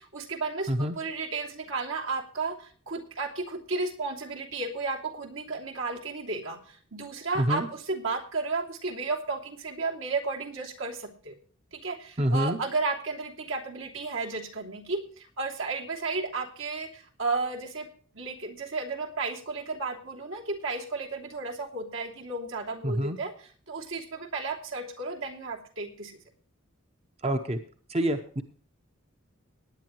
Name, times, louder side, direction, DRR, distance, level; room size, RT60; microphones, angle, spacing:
voice 1, 0.0-11.4 11.7-17.9 18.1-26.2, right 3 dB, 80° right, 0 dB, 2.9 m, -33 dB
voice 2, 12.2-12.6 22.8-23.2 27.2-27.6 27.9-28.4, right 1 dB, 30° right, 7 dB, 0.8 m, -26 dB
18.5 x 9.6 x 3.1 m, 0.43 s
head